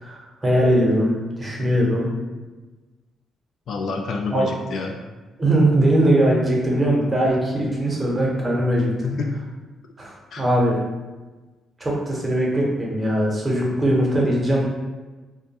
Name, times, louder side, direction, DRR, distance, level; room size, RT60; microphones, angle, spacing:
voice 1, 0.0-2.1 4.3-4.5 5.4-8.9 10.0-10.8 11.8-14.6, right 1 dB, 20° right, -3 dB, 0.7 m, -20 dB
voice 2, 3.7-5.0 9.0-9.3 10.3-10.5, left 4 dB, 65° left, 2 dB, 0.3 m, -28 dB
2.2 x 2.1 x 2.8 m, 1.2 s
cardioid pair, 90°, 0 cm